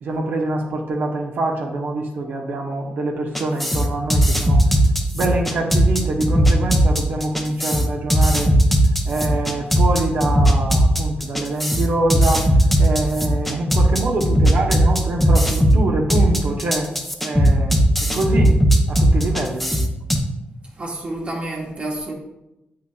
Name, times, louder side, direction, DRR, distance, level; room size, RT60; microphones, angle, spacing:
voice 1, 0.0-4.6 5.1-8.5 9.0-12.5 12.8-16.9 17.2-17.8 18.1-18.6 18.9-19.7, right 2 dB, 65° right, 1 dB, 0.8 m, -24 dB
sound 1, 3.3-20.2, equal, 5° left, 0.7 m, -17 dB
voice 2, 20.8-22.1, right 1 dB, 35° right, -2 dB, 1.2 m, -29 dB
7.9 x 5.7 x 2.3 m, 0.94 s
cardioid pair, 95°, 4 cm